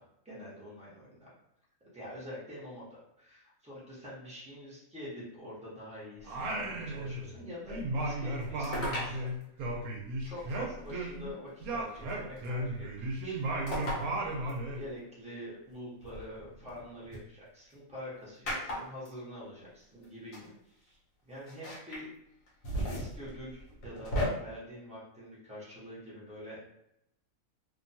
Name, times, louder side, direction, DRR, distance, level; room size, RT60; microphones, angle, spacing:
voice 1, 0.0-1.3 1.9-9.9 10.2-14.4 14.7-21.0 21.2-22.1 22.7-26.6, equal, 5° right, -8 dB, 0.7 m, -46 dB
Singing, 6.2-7.4 7.7-11.3 11.6-14.8, right 1 dB, 75° right, 1.0 m, -35 dB
sound 1, 8.6-9.2 10.5-10.6 12.1-12.5 13.7-14.1 14.5-14.6 16.0-17.2 18.5-19.1 20.0-20.1 20.3-20.5 21.5-22.0 22.5-24.3, equal, 65° left, 1.1 m, -35 dB
2.7 x 2.2 x 2.7 m, 0.80 s
omnidirectional pair, 1.6 m